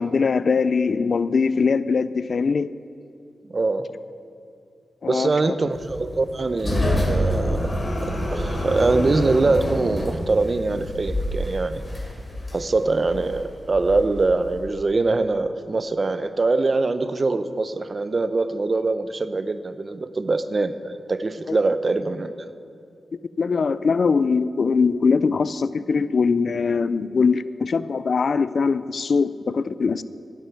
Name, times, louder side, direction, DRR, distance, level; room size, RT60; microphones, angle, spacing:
voice 1, 0.0-2.7 5.0-5.5 23.4-30.0, left 5 dB, 65° left, 15 dB, 0.3 m, -21 dB
voice 2, 3.5-3.8 5.1-7.8 8.0-11.8 12.5-22.5, right 3 dB, 50° right, 11 dB, 0.6 m, -23 dB
sound 1, 5.7-14.8, equal, 35° left, 3.1 m, -27 dB
10.5 x 7.5 x 9.2 m, 2.5 s
cardioid pair, 55°, 0 cm